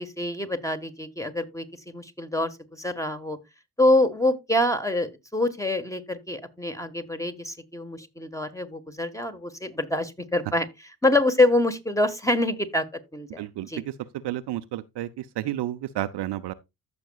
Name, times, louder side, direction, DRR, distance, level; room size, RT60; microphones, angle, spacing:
voice 1, 0.0-3.4 3.8-10.7 11.0-13.4 13.7-13.8, left 1 dB, 5° left, 1.5 m, -25 dB
voice 2, 13.4-13.9 14.2-16.5, right 14 dB, 55° right, 0.8 m, -31 dB
14.5 x 6.2 x 2.4 m
hypercardioid pair, 50°, 48 cm